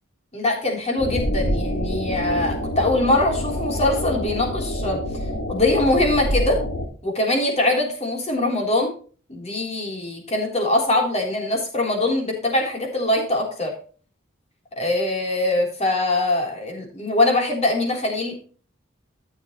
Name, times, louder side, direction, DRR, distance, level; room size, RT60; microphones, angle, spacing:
voice 1, 0.3-5.0 5.5-6.6 7.0-8.9 9.3-13.7 14.8-18.4, left 2 dB, 35° left, 0 dB, 3.6 m, -22 dB
sound 1, 1.0-6.9, equal, 85° left, 2.2 m, -26 dB
13.5 x 7.3 x 3.1 m, 0.40 s
head